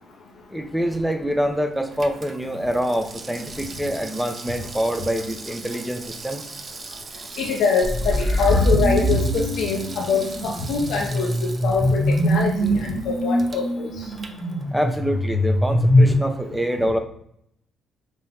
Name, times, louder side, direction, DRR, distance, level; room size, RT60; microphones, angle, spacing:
voice 1, 0.5-6.4 14.7-17.0, equal, ahead, 7 dB, 0.6 m, -25 dB
Water tap faucet / Sink (filling or washing), 0.8-15.1 15.4-15.5, right 3 dB, 40° right, 0.5 m, -40 dB
voice 2, 7.4-13.9, left 5 dB, 75° left, -2 dB, 0.6 m, -24 dB
sound 1, 7.8-16.1, equal, 15° left, 1.2 m, -22 dB
5.2 x 2.1 x 3.5 m, 0.72 s
supercardioid pair, 60°, 0 cm